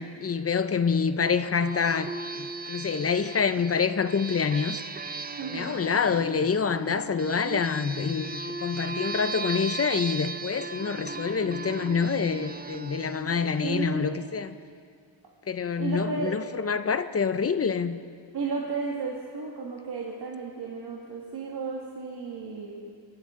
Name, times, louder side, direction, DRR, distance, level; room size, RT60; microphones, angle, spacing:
voice 1, 0.0-4.8 5.5-14.5 15.5-18.0, left 6 dB, 35° left, 11 dB, 0.5 m, -27 dB
sound 1, 1.2-14.4, right 4 dB, 20° right, 0.4 m, -38 dB
voice 2, 5.4-5.8 7.4-7.7 13.6-14.2 15.8-16.5 18.3-22.8, right 4 dB, 55° right, -3 dB, 1.7 m, -33 dB
25.5 x 12.5 x 3.7 m, 2.2 s
wide cardioid pair, 145°, 46 cm